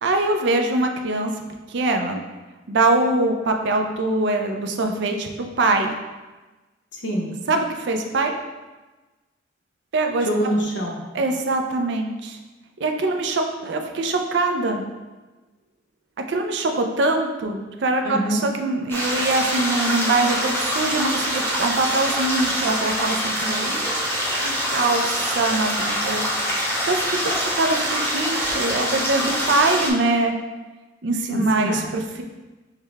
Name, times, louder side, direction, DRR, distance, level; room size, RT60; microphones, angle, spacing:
voice 1, 0.0-1.3 1.7-2.2 2.7-5.3 5.6-5.9 7.5-8.3 9.9-10.3 11.1-12.4 12.8-14.8 16.3-23.8 24.4-26.2 26.6-30.3 31.0-32.2, right 2 dB, 60° right, 4 dB, 0.4 m, -23 dB
voice 2, 6.9-7.3 10.2-11.0 18.0-18.4 31.3-31.8, right 1 dB, 65° left, -1 dB, 0.9 m, -25 dB
sound 1, 18.9-29.9, equal, 10° left, 0.7 m, -24 dB
6.4 x 2.2 x 3.3 m, 1.2 s
head